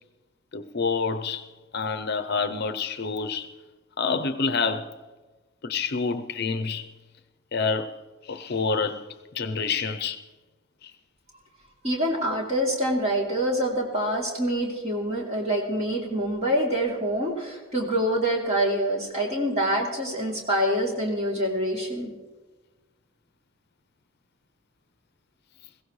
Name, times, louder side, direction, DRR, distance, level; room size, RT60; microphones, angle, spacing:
voice 1, 0.5-1.5 1.7-3.5 4.0-5.0 5.6-6.9 7.5-9.1 9.3-10.2 10.8-10.9, left 4 dB, 55° left, 0.6 m, -28 dB
voice 2, 11.8-22.1, equal, 30° right, 3.0 m, -26 dB
21.5 x 16.0 x 3.2 m
head